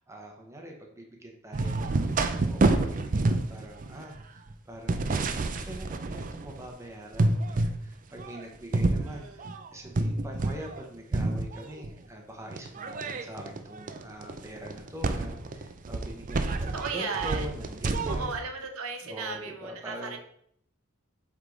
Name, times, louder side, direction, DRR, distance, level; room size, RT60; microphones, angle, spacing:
voice 1, 0.1-18.4 19.0-20.2, right 1 dB, 15° right, 1 dB, 0.9 m, -43 dB
sound 1, 1.5-6.7 7.1-7.8 8.2-10.8 11.1-11.9 12.5-18.4, right 2 dB, 40° right, 0.4 m, -29 dB
voice 2, 9.0-9.6 16.7-17.5 18.1-20.2, right 4 dB, 80° right, 4 dB, 0.8 m, -36 dB
7.8 x 3.7 x 3.7 m, 0.70 s
head